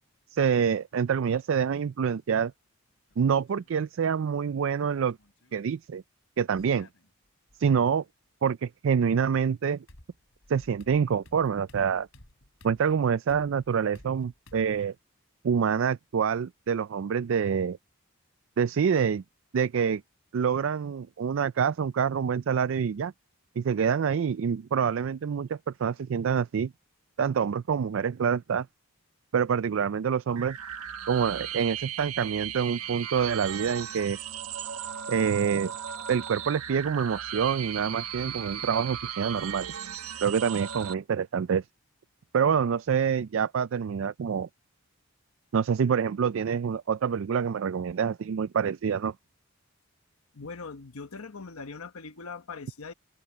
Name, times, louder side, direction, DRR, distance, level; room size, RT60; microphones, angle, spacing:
voice 1, 0.3-2.5 3.2-5.2 5.5-6.0 6.4-6.9 7.6-8.0 8.4-9.8 10.5-12.1 12.6-14.9 15.4-17.8 18.6-19.2 19.5-20.0 20.3-23.1 23.6-26.7 27.2-28.7 29.3-30.6 31.1-34.2 35.1-35.7 36.1-39.7 40.2-41.6 42.3-44.5 45.5-49.1, right 7 dB, 60° right, 0.3 m, -26 dB
sound 1, 3.1-3.7 5.0-5.6 6.6-7.6 9.3-9.4 9.9-14.9, left 1 dB, 65° left, 3.9 m, -55 dB
sound 2, 30.3-40.9, right 9 dB, 85° right, 1.5 m, -37 dB
voice 2, 50.3-52.9, left 4 dB, 80° left, 1.0 m, -41 dB
head